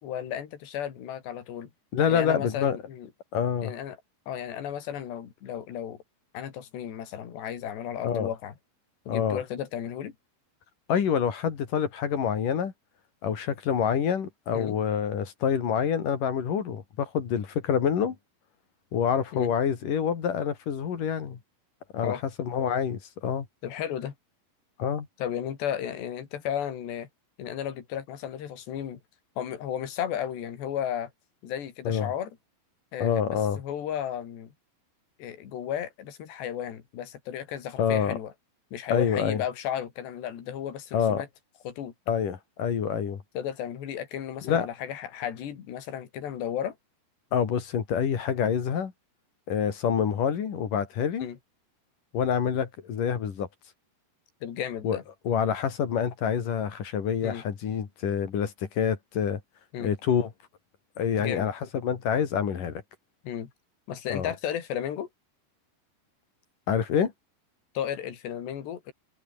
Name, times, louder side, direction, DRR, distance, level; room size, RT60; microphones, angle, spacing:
voice 1, 0.0-1.7 2.1-3.1 3.6-4.0 4.3-6.0 6.3-8.5 9.1-10.1 14.5-14.8 19.3-19.5 22.0-22.2 23.6-24.1 25.2-27.1 27.4-29.0 29.4-31.1 31.4-32.3 32.9-34.5 35.2-38.3 38.7-41.3 41.7-41.9 43.4-46.8 51.2-51.4 54.4-55.0 57.2-57.4 59.7-59.9 61.2-61.5 63.3-63.5 63.9-65.1 67.8-68.9, left 9 dB, 70° left, 5.1 m, -34 dB
voice 2, 1.9-2.8 3.3-3.7 8.0-8.3 9.1-9.4 10.9-12.7 13.2-18.2 18.9-21.4 21.9-23.5 24.8-25.1 31.9-32.1 33.0-33.6 37.8-38.2 38.9-39.4 40.9-41.2 42.1-43.2 44.4-44.7 47.3-48.9 49.5-51.3 52.1-53.5 54.8-55.0 55.3-59.4 59.8-60.3 61.0-62.8 64.1-64.3 66.7-67.1, left 7 dB, 50° left, 4.0 m, -27 dB
omnidirectional pair, 5.1 m